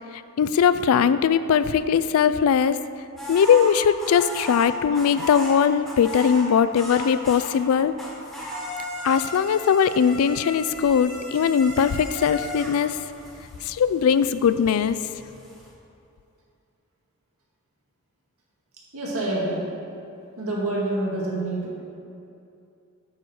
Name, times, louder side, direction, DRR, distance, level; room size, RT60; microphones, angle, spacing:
voice 1, 0.4-2.8 3.3-7.9 9.0-13.0 13.6-15.0, left 7 dB, 75° left, 13 dB, 0.3 m, -20 dB
sound 1, 3.2-7.7 8.0-15.7, equal, ahead, 1.4 m, -36 dB
voice 2, 18.9-19.7 20.4-21.8, right 2 dB, 75° right, -4 dB, 1.9 m, -27 dB
8.9 x 6.3 x 4.3 m, 2.6 s
head